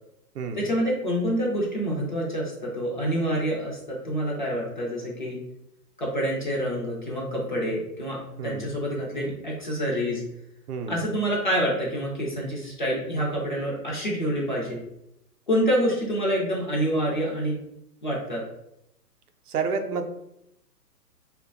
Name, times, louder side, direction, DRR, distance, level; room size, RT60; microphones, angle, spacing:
voice 1, 0.5-5.4 6.0-10.2 10.9-14.8 15.5-17.6 18.0-18.4, equal, 35° left, -4 dB, 0.4 m, -27 dB
voice 2, 19.5-20.1, right 5 dB, 65° right, 6 dB, 0.5 m, -29 dB
2.6 x 2.2 x 2.4 m, 0.81 s
hypercardioid pair, 140°, 49 cm